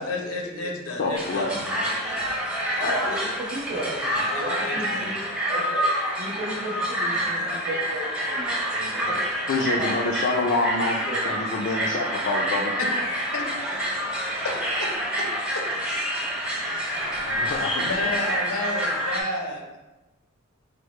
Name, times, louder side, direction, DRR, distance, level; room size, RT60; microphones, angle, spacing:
voice 1, 0.0-2.5 3.9-5.1 7.1-7.6 8.7-9.5 12.8-13.5 14.1-14.9 15.2-15.3 15.5-16.0 16.6-17.3 17.7-19.8, left 2 dB, 90° left, 1 dB, 0.7 m, -33 dB
voice 2, 1.0-1.7 2.8-3.0 9.5-12.7 17.2-17.8, left 2 dB, 55° left, -1 dB, 0.3 m, -27 dB
sound 1, 1.1-19.2, equal, 5° right, 0.5 m, -27 dB
voice 3, 2.7-3.9 4.4-5.8 6.1-8.6 8.9-9.3 9.5-10.0 11.0-11.3 11.7-12.1, right 1 dB, 90° right, -8 dB, 1.1 m, -34 dB
4.6 x 2.0 x 3.1 m, 1.1 s
head